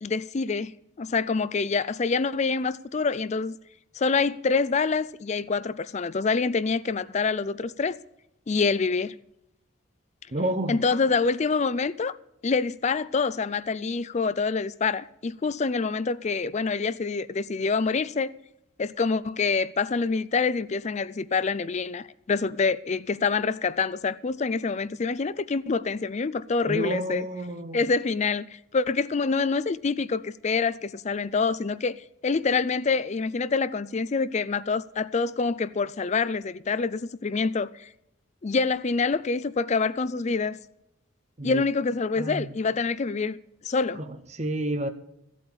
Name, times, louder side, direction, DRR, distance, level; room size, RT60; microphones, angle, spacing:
voice 1, 0.0-3.6 3.9-8.0 8.5-9.2 10.7-12.2 12.4-18.3 18.8-27.2 27.7-37.9 38.4-40.6 41.4-43.4 43.6-44.0, left 4 dB, 35° left, 0.4 m, -26 dB
voice 2, 10.3-10.8 26.7-27.8 41.4-41.6 42.2-42.5 43.9-44.9, right 1 dB, 35° right, 1.0 m, -30 dB
15.0 x 8.4 x 6.9 m
head